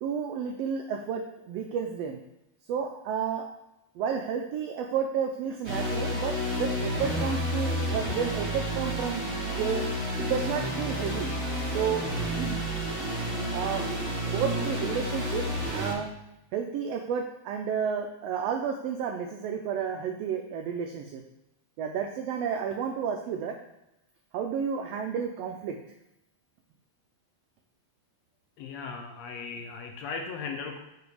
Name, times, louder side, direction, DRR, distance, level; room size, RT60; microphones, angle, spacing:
voice 1, 0.0-2.2 2.7-3.4 4.0-9.2 9.5-9.9 10.2-11.3 11.7-12.1 12.3-12.6 13.5-15.5 15.7-16.1 16.5-21.2 21.8-23.5 24.3-25.8, right 7 dB, 90° right, 3 dB, 1.4 m, -31 dB
sound 1, 5.6-15.9, equal, 30° right, 2.1 m, -30 dB
voice 2, 28.6-30.8, left 5 dB, 75° left, 3 dB, 1.7 m, -37 dB
5.1 x 4.9 x 4.8 m, 0.87 s
omnidirectional pair, 3.4 m